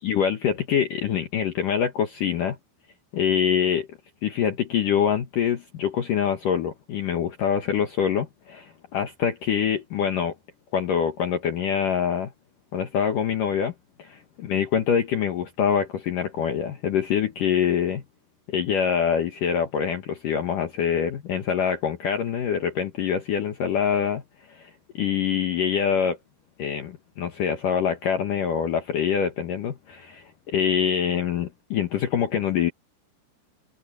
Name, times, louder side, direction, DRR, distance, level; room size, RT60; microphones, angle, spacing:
voice 1, 0.0-2.6 3.1-3.9 4.2-10.4 10.7-12.3 12.7-13.7 14.0-14.2 14.5-18.0 18.5-24.2 24.5-26.2 26.6-32.7, left 8 dB, 65° left, 2.1 m, -25 dB
omnidirectional pair, 5.7 m